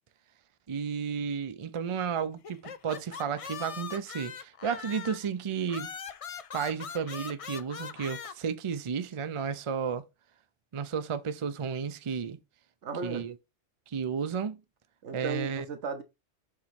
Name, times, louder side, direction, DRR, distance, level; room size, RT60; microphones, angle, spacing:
voice 1, 0.7-5.9 6.5-10.0 10.7-12.4 13.0-13.3 13.9-14.6 15.1-15.7, right 6 dB, 40° right, 0.4 m, -33 dB
sound 1, 2.4-5.3 5.7-8.3, left 7 dB, 60° left, 0.3 m, -41 dB
voice 2, 12.8-13.3 15.0-16.0, right 5 dB, 75° right, 1.3 m, -35 dB
7.3 x 3.1 x 4.2 m
omnidirectional pair, 1.2 m